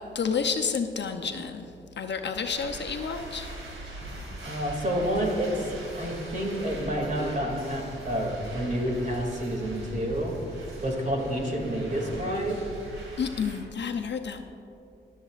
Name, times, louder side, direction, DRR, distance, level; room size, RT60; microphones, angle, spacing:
voice 1, 0.1-1.7 2.0-3.5 13.2-14.4, left 6 dB, 60° left, 5 dB, 0.7 m, -30 dB
sound 1, 2.4-13.6, right 1 dB, 80° right, 2.5 m, -41 dB
voice 2, 4.4-12.6, equal, 40° right, 0 dB, 2.5 m, -29 dB
21.5 x 7.3 x 2.5 m, 2.7 s
cardioid pair, 70°, 20 cm